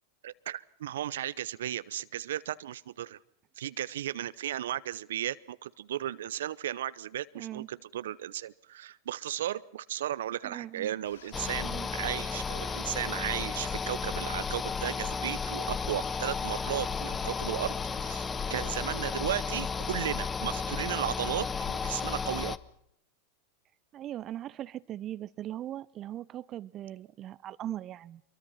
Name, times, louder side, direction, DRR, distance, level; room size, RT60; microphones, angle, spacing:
voice 1, 0.2-3.2 3.6-17.7 18.0-22.6, right 11 dB, 70° right, 0.8 m, -35 dB
voice 2, 7.3-7.7 10.4-10.9 11.6-11.9 23.9-28.2, right 12 dB, 35° right, 0.8 m, -39 dB
sound 1, 11.0-18.9, left 8 dB, 70° left, 2.3 m, -52 dB
sound 2, 11.3-22.6, left 5 dB, 20° left, 1.1 m, -33 dB
26.0 x 23.5 x 5.7 m
hypercardioid pair, 90°, 0 cm